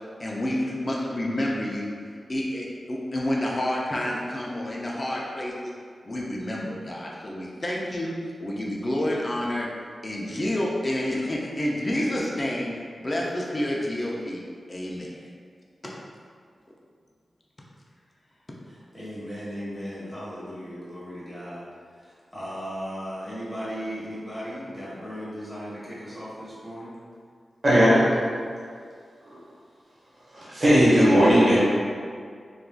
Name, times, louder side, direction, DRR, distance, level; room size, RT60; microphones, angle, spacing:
voice 1, 0.2-1.9 2.3-5.7 6.0-9.7 10.0-15.1 15.8-16.0, left 1 dB, 30° left, -4 dB, 0.5 m, -29 dB
voice 2, 18.6-21.7 22.0-26.9, equal, 5° right, -10 dB, 1.2 m, -36 dB
voice 3, 27.6-28.0 29.3-29.4 30.3-31.6, equal, 50° right, -8 dB, 1.1 m, -17 dB
3.4 x 2.4 x 2.2 m, 2.1 s
wide cardioid pair, 75°, 0 cm